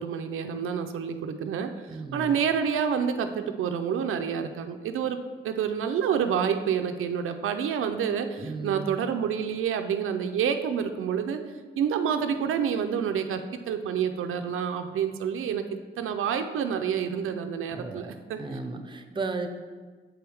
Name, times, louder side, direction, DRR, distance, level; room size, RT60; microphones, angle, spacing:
voice 1, 0.0-1.7 2.1-5.2 5.4-11.4 11.8-13.4 13.7-15.7 16.0-18.4, right 7 dB, 85° right, 7 dB, 0.5 m, -28 dB
voice 2, 1.9-2.3 8.4-9.0 17.7-19.5, right 3 dB, 25° right, 7 dB, 0.6 m, -35 dB
7.7 x 4.6 x 3.4 m, 1.4 s
cardioid pair, 85°, 21 cm